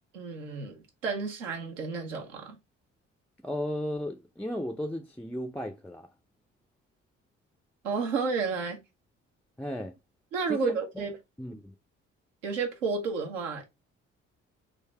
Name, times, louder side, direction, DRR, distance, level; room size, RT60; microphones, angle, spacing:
voice 1, 0.1-2.6 7.8-8.8 10.3-11.2 12.4-13.6, right 4 dB, 80° right, 0.9 m, -31 dB
voice 2, 3.4-6.1 9.6-9.9 10.5-11.1 11.4-11.7, equal, 5° left, 0.4 m, -35 dB
3.9 x 2.6 x 3.1 m
figure-of-eight pair, 45°, 37 cm